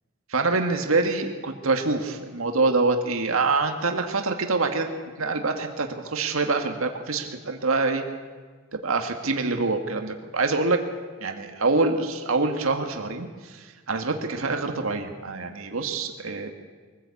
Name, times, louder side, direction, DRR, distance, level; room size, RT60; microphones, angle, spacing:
voice 1, 0.3-4.9 5.2-8.0 8.7-10.8 11.2-16.5, right 3 dB, 80° right, 4 dB, 1.7 m, -25 dB
23.5 x 15.0 x 8.4 m, 1.5 s
head